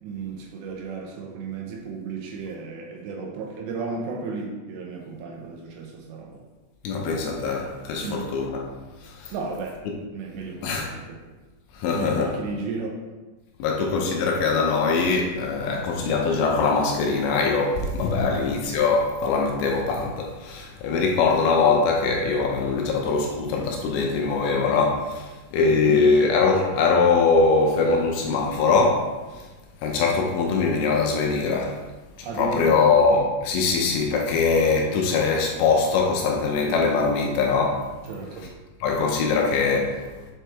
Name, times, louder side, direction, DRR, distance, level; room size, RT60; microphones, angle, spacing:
voice 1, 0.0-6.4 8.0-8.3 9.3-9.8 10.1-11.2 11.9-13.0 18.3-18.5 25.7-26.1 32.3-32.9 38.0-38.5, right 4 dB, 80° right, 0 dB, 2.8 m, -34 dB
voice 2, 6.8-8.6 9.0-9.3 10.6-10.9 11.8-12.3 13.6-29.0 29.8-31.8 32.2-37.8 38.8-40.0, left 4 dB, 80° left, 0 dB, 2.8 m, -22 dB
7.4 x 4.6 x 3.4 m, 1.2 s
omnidirectional pair, 5.4 m